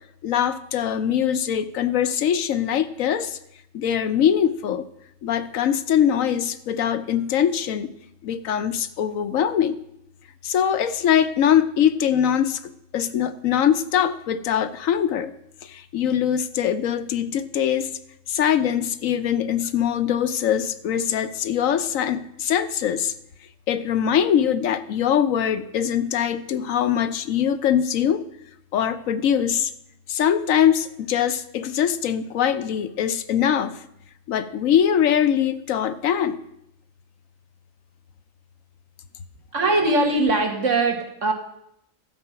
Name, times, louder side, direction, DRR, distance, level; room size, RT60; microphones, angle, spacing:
voice 1, 0.2-3.4 3.7-4.8 5.2-7.9 8.2-9.8 10.4-15.3 15.6-17.9 18.3-23.1 23.7-28.2 28.7-29.7 30.1-33.8 34.3-36.4, left 9 dB, 80° left, 11 dB, 1.1 m, -22 dB
voice 2, 39.5-41.3, right 2 dB, 65° right, 3 dB, 2.0 m, -21 dB
12.5 x 7.9 x 5.7 m, 0.76 s
omnidirectional pair, 1.4 m